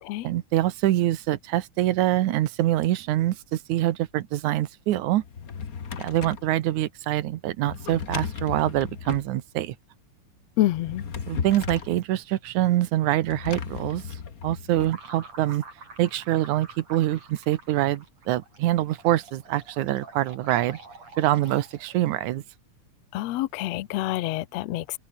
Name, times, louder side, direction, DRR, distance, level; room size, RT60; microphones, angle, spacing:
voice 1, 0.2-5.2 6.0-9.8 11.3-14.2 14.4-15.6 16.0-20.8 21.2-22.4, right 14 dB, 85° right, 2.4 m, -25 dB
Drawer open or close, 5.2-6.5 7.7-9.3 10.6-12.0 13.3-14.9, left 6 dB, 40° left, 1.4 m, -35 dB
voice 2, 10.6-11.0 23.1-25.0, left 15 dB, 75° left, 1.8 m, -27 dB
sound 1, 14.8-22.1, right 3 dB, 60° right, 8.1 m, -47 dB
omnidirectional pair, 3.3 m